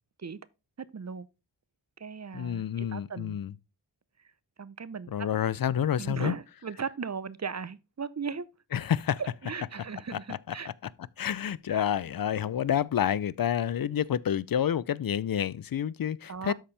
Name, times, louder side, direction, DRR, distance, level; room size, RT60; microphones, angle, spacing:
voice 1, 0.8-1.3 2.0-3.4 4.6-5.3 6.0-8.5 9.2-10.7 11.7-11.9 16.3-16.5, right 5 dB, 40° right, 0.7 m, -37 dB
voice 2, 2.3-3.5 5.1-6.3 8.7-9.2 10.3-10.4 11.2-16.5, left 9 dB, 55° left, 0.5 m, -28 dB
12.5 x 4.4 x 3.3 m
cardioid pair, 50°, 44 cm